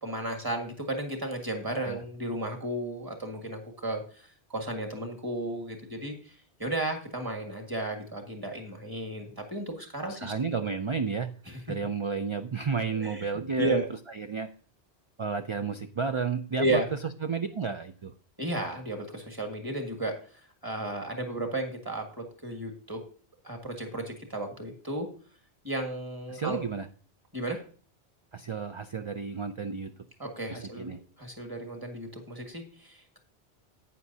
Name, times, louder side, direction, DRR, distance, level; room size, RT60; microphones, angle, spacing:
voice 1, 0.0-10.3 11.5-11.6 12.9-13.8 16.6-16.9 18.4-20.2 20.6-23.0 23.4-25.1 25.6-26.6 27.3-27.6 30.2-33.2, right 1 dB, 20° right, 3 dB, 1.7 m, -34 dB
voice 2, 10.1-11.3 11.7-13.8 14.1-14.5 15.2-16.8 17.2-18.1 26.3-26.9 28.3-29.9 30.5-31.0, right 5 dB, 50° right, 7 dB, 0.3 m, -32 dB
11.0 x 8.9 x 2.7 m, 0.42 s
omnidirectional pair, 1.1 m